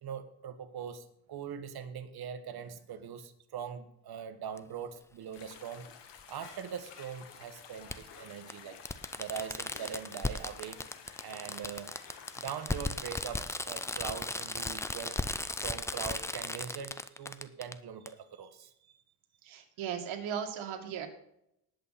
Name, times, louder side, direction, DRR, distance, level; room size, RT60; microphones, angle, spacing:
voice 1, 0.0-5.9 6.3-8.8 9.2-10.8 11.2-11.9 12.4-15.2 15.6-19.0, right 7 dB, 50° right, 8 dB, 1.6 m, -42 dB
Fireworks, 4.6-4.7 6.2-6.3 7.9-8.0 8.5-8.6 8.9-17.7 18.1-18.2, left 2 dB, 5° left, 0.3 m, -36 dB
sound 1, 5.3-16.3, left 7 dB, 55° left, 2.0 m, -53 dB
sound 2, 6.4-12.3 14.2-14.3 15.3-15.8, left 5 dB, 85° left, 5.9 m, -56 dB
voice 2, 19.4-21.1, right 8 dB, 70° right, 4 dB, 2.4 m, -37 dB
19.0 x 7.7 x 4.2 m, 0.76 s
cardioid pair, 130°, 49 cm